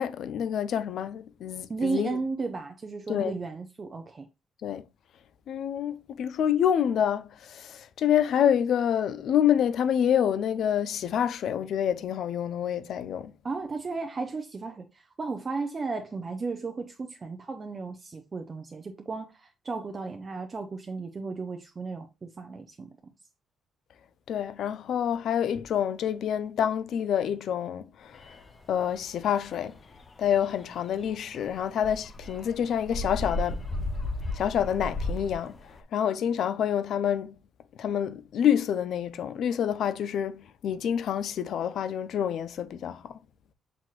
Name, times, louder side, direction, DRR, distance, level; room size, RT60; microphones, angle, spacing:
voice 1, 0.0-2.2 3.1-3.3 4.6-4.8 5.5-13.3 24.3-28.2 28.7-29.7 30.2-33.6 34.4-35.5 35.9-37.3 37.8-43.2, left 9 dB, 70° left, 0.4 m, -27 dB
voice 2, 1.7-4.3 13.4-23.0, right 4 dB, 35° right, 0.5 m, -34 dB
Palatino with background music, 28.1-35.8, left 1 dB, 35° left, 0.6 m, -36 dB
6.1 x 3.0 x 2.3 m
cardioid pair, 90°, 0 cm